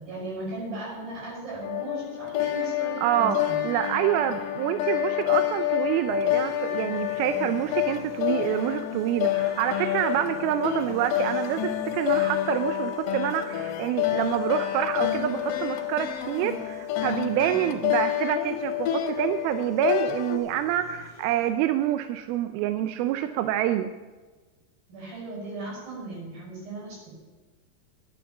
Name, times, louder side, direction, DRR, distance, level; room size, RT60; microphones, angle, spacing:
voice 1, 0.0-3.7 7.2-7.6 17.5-17.7 24.9-27.1, right 2 dB, 60° right, -3 dB, 7.4 m, -37 dB
sound 1, 1.6-20.4, left 13 dB, 75° left, 2.5 m, -28 dB
voice 2, 3.0-3.4 3.6-23.9, right 12 dB, 80° right, 9 dB, 2.3 m, -27 dB
sound 2, 5.9-21.5, left 1 dB, 10° left, 1.4 m, -47 dB
11.5 x 9.0 x 7.1 m, 1.3 s
omnidirectional pair, 4.6 m